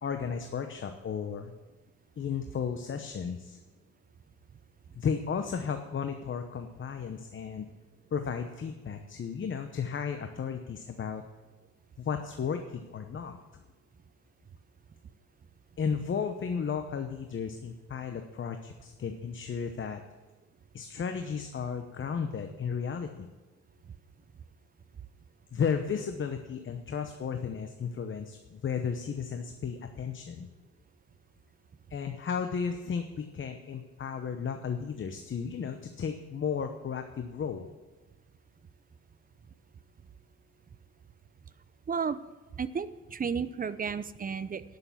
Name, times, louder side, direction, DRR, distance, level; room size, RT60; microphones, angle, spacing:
voice 1, 0.0-1.5 2.2-3.6 4.9-7.7 8.1-11.2 12.0-13.4 15.8-20.0 20.7-23.3 25.5-30.5 31.9-37.7, left 6 dB, 40° left, 7 dB, 0.9 m, -34 dB
voice 2, 41.9-42.2 42.6-44.6, right 6 dB, 30° right, 15 dB, 0.6 m, -32 dB
11.0 x 6.7 x 7.4 m, 1.2 s
cardioid pair, 90°, 30 cm